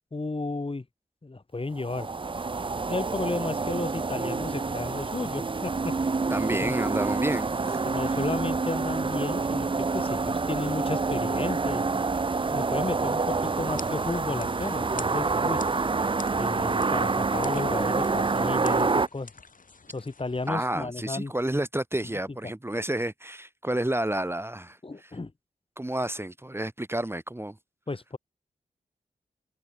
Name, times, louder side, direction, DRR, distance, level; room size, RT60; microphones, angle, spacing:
voice 1, 0.1-0.9 1.2-2.1 2.8-5.9 6.6-6.7 7.8-11.9 12.4-15.6 16.4-19.3 19.9-21.3 24.8-25.3 27.9-28.2, left 3 dB, 35° left, 2.3 m, -33 dB
sound 1, 1.8-19.1, right 4 dB, 35° right, 0.7 m, -27 dB
voice 2, 6.3-7.8 20.5-25.1 25.8-27.6, right 1 dB, 15° right, 1.5 m, -30 dB
sound 2, 13.4-20.5, left 4 dB, 60° left, 6.1 m, -47 dB
cardioid pair, 40°, 16 cm